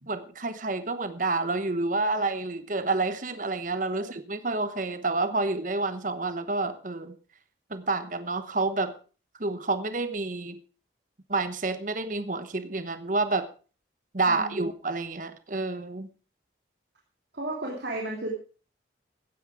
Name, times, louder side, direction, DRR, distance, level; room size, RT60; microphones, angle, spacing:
voice 1, 0.1-7.2 7.7-8.9 9.4-10.6 11.3-13.5 14.1-16.1, right 3 dB, 45° right, 11 dB, 1.0 m, -29 dB
voice 2, 14.3-14.6 17.3-18.3, right 1 dB, 65° right, -1 dB, 3.0 m, -34 dB
16.0 x 9.8 x 4.8 m, 0.37 s
head